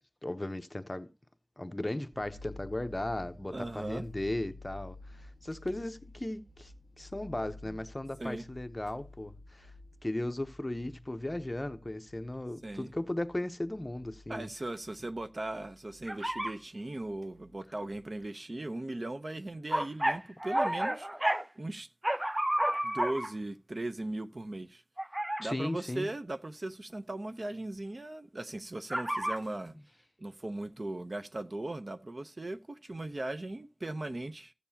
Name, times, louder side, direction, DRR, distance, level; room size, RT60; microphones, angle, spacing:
voice 1, 0.2-1.1 1.6-9.7 10.0-14.5 25.4-26.1, left 1 dB, 30° left, 0.8 m, -36 dB
sound 1, 2.1-18.2, left 2 dB, 75° right, 2.9 m, -53 dB
voice 2, 3.5-4.1 8.2-8.4 12.6-12.9 14.3-21.1 21.6-21.9 22.8-24.8 25.4-29.8 30.2-34.5, right 2 dB, 55° right, 0.7 m, -38 dB
sound 2, 16.1-16.5 19.7-21.5 22.0-23.3 25.0-25.4 28.9-29.4, right 1 dB, 20° right, 0.4 m, -30 dB
15.0 x 6.9 x 2.8 m
wide cardioid pair, 60°, 0 cm